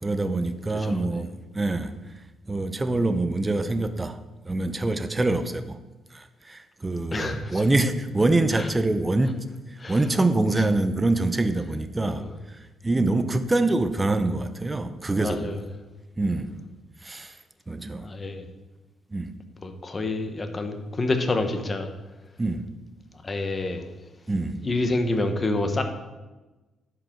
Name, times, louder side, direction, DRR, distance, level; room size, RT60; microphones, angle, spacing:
voice 1, 0.0-2.0 2.5-4.2 4.4-5.8 6.1-9.4 9.9-12.6 12.8-15.5 16.2-16.6 17.0-17.4 17.7-18.1 19.1-19.3 22.4-22.6 24.3-24.6, right 2 dB, 20° right, 10 dB, 0.7 m, -25 dB
voice 2, 0.7-1.2 7.1-7.6 8.5-8.7 9.8-10.0 12.1-12.2 15.2-15.6 18.0-18.5 19.6-21.9 23.2-23.8 24.6-25.8, left 2 dB, 30° left, 6 dB, 1.1 m, -28 dB
11.0 x 5.1 x 4.6 m, 1.1 s
cardioid pair, 90°, 0 cm